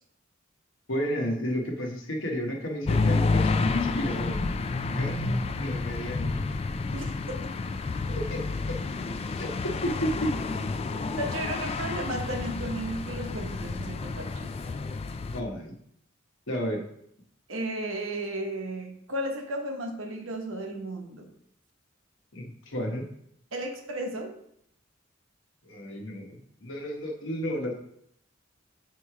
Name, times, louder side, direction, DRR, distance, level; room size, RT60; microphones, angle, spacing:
voice 1, 0.9-4.4 4.9-6.4 8.1-8.4 9.3-10.4 11.6-11.7 15.3-15.8 16.5-16.8 22.3-23.1 25.6-27.7, equal, 70° left, 1 dB, 1.1 m, -32 dB
sound 1, 2.9-15.4, left 3 dB, 30° left, 0.3 m, -29 dB
voice 2, 11.2-14.5 17.5-21.3 23.5-24.3, right 1 dB, 90° right, 3 dB, 1.0 m, -34 dB
6.8 x 3.1 x 4.7 m, 0.72 s
head